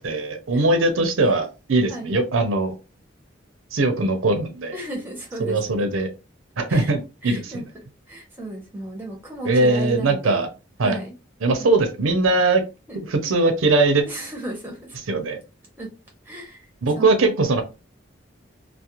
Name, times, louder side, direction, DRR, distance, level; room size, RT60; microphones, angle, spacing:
voice 1, 0.0-2.7 3.7-4.7 5.4-6.1 6.6-7.6 9.4-10.5 10.8-11.0 11.4-12.6 13.1-14.1 15.1-15.4 16.8-17.6, right 2 dB, 85° right, 7 dB, 0.5 m, -20 dB
voice 2, 4.7-5.8 6.7-6.9 7.2-7.6 8.1-10.5 10.8-11.1 12.9-13.0 14.1-15.0 15.8-15.9 16.3-16.6 16.9-17.3, right 1 dB, 10° right, 0 dB, 0.7 m, -34 dB
2.4 x 2.0 x 2.8 m, 0.29 s
head